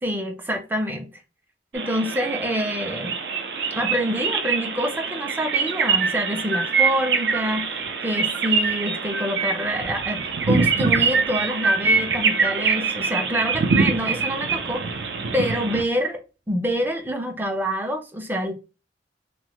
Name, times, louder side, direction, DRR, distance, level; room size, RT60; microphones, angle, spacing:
voice 1, 0.0-1.1 1.7-3.2 3.7-14.8 15.3-16.2 16.5-18.5, equal, 10° right, 0.4 m, -26 dB
sound 1, 1.7-15.8, right 5 dB, 70° right, 0.5 m, -24 dB
3.0 x 2.1 x 2.8 m
head